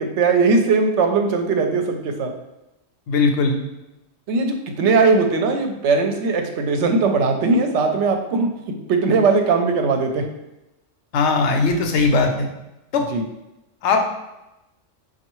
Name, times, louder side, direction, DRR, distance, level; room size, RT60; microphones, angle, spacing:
voice 1, 0.0-2.3 4.3-10.3 13.1-13.2, right 4 dB, 75° right, 5 dB, 0.9 m, -19 dB
voice 2, 3.1-3.6 11.1-12.5 12.9-13.1 13.8-14.0, left 4 dB, 75° left, 3 dB, 0.9 m, -19 dB
5.3 x 2.3 x 3.0 m, 0.94 s
omnidirectional pair, 1.2 m